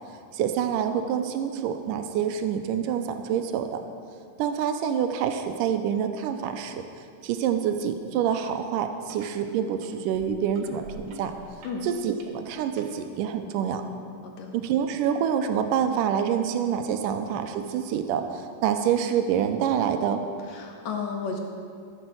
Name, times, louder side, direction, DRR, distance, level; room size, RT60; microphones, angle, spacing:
voice 1, 0.3-3.8 4.4-6.9 7.2-11.3 11.8-13.8 14.5-20.2, right 8 dB, 90° right, 7 dB, 2.2 m, -27 dB
sound 1, 8.4-8.6 8.9-9.3 9.8-12.9 13.6-13.7, right 4 dB, 55° right, 1.7 m, -48 dB
voice 2, 20.5-21.4, left 5 dB, 65° left, 2 dB, 2.1 m, -33 dB
14.0 x 7.1 x 6.3 m, 2.3 s
omnidirectional pair, 3.7 m